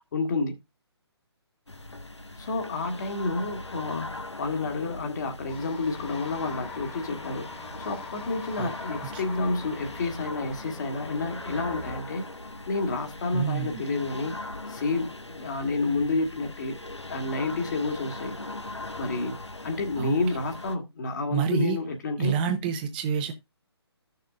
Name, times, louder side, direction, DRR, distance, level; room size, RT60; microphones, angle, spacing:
voice 1, 0.1-0.6 2.4-7.5 7.8-12.2 12.7-14.4 14.7-16.8 17.1-18.4 19.0-19.4 19.6-22.3, left 3 dB, 40° left, 1.8 m, -29 dB
sound 1, 1.7-20.8, left 2 dB, 85° left, 1.2 m, -41 dB
sound 2, 5.5-12.0, left 4 dB, 10° left, 1.5 m, -43 dB
voice 2, 13.3-13.8 20.0-20.2 21.3-21.8 22.2-23.3, right 8 dB, 20° right, 0.7 m, -28 dB
14.5 x 6.6 x 2.5 m
figure-of-eight pair, 140°, 14 cm